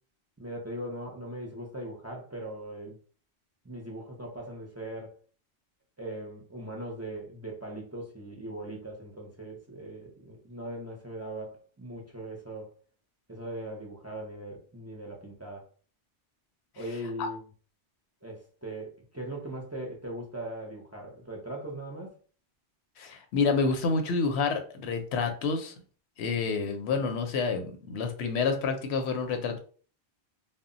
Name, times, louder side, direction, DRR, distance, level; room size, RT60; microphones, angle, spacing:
voice 1, 0.4-3.0 3.6-5.1 6.0-12.7 13.3-15.7 16.8-17.4 18.2-22.1, right 1 dB, 20° right, -1 dB, 0.4 m, -40 dB
voice 2, 23.0-25.7 26.2-29.6, left 4 dB, 90° left, 6 dB, 0.9 m, -28 dB
2.1 x 2.0 x 3.7 m, 0.42 s
omnidirectional pair, 1.1 m